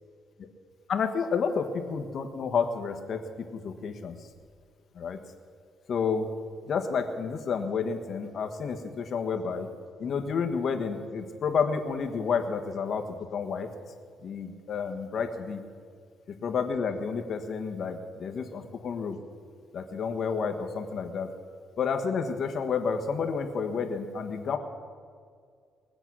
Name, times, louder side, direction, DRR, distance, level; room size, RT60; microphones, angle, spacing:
voice 1, 0.9-4.1 4.9-5.2 5.9-6.3 6.7-9.7 10.0-13.1 13.3-13.7 14.2-15.6 16.4-19.2 19.7-21.3 21.8-24.6, left 5 dB, 60° left, 6 dB, 1.4 m, -30 dB
21.5 x 7.9 x 6.2 m, 2.1 s
cardioid pair, 90°, 0 cm